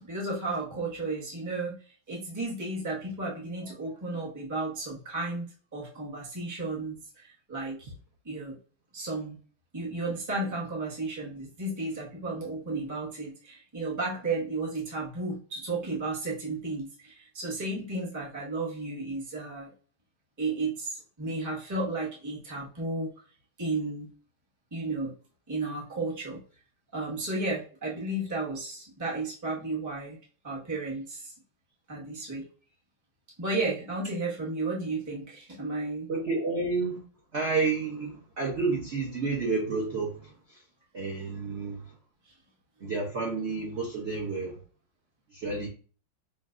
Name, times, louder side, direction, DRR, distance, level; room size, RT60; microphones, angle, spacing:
voice 1, 0.0-1.7 2.1-5.5 5.7-7.9 8.2-8.6 8.9-9.4 9.7-19.7 20.4-23.1 23.6-24.1 24.7-25.1 25.5-26.4 26.9-30.2 30.4-31.3 31.9-32.4 33.4-36.1, right 2 dB, 15° right, 0.7 m, -33 dB
voice 2, 36.1-37.0 37.3-40.6 40.9-42.0 42.8-44.6 45.3-45.7, right 4 dB, 50° right, 0.8 m, -30 dB
5.4 x 2.5 x 2.4 m
omnidirectional pair, 2.2 m